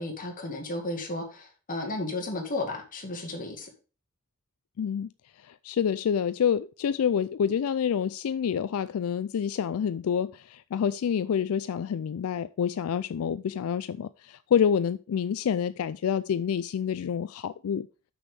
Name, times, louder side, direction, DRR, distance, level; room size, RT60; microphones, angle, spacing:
voice 1, 0.0-3.7, left 2 dB, 40° left, 2.1 m, -33 dB
voice 2, 4.8-5.1 5.4-17.9, left 8 dB, 85° left, 0.4 m, -27 dB
6.4 x 6.1 x 5.0 m
head